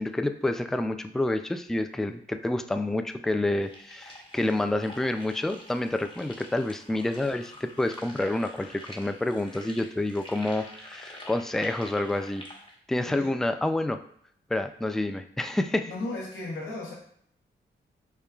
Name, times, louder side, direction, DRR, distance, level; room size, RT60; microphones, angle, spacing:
voice 1, 0.0-12.4 12.9-14.0 14.5-15.9, left 1 dB, ahead, 8 dB, 0.3 m, -28 dB
sound 1, 3.6-12.7, left 1 dB, 25° left, 1.2 m, -47 dB
voice 2, 13.0-13.4 15.9-16.9, left 2 dB, 85° left, -2 dB, 1.0 m, -35 dB
6.5 x 2.3 x 2.3 m, 0.66 s
supercardioid pair, 45°, 20 cm